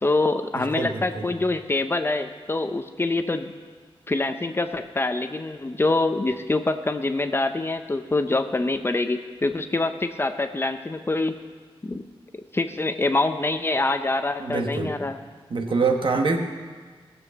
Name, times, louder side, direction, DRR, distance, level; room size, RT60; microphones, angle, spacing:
voice 1, 0.0-3.5 4.1-11.4 11.8-12.0 12.5-15.2, left 2 dB, 25° left, 8 dB, 0.6 m, -25 dB
voice 2, 0.5-1.3 14.4-14.9 15.5-16.4, right 4 dB, 60° right, 3 dB, 1.4 m, -25 dB
18.5 x 7.0 x 7.2 m, 1.5 s
wide cardioid pair, 130°, 10 cm